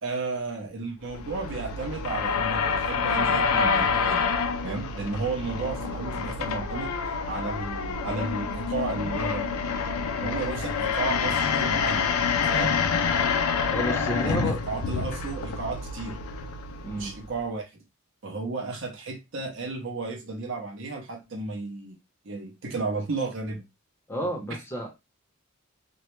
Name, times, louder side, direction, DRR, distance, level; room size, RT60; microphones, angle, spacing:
voice 1, 0.0-4.2 4.6-6.9 7.3-9.5 10.2-12.0 12.5-12.8 14.2-16.2 17.0-17.7 18.2-22.0 22.2-23.6, right 3 dB, 55° right, 0.6 m, -33 dB
sound 1, 1.0-17.4, left 5 dB, 80° left, 0.4 m, -27 dB
voice 2, 13.7-14.6 16.8-17.1 24.1-24.9, equal, 10° left, 0.6 m, -31 dB
2.2 x 2.0 x 3.0 m
head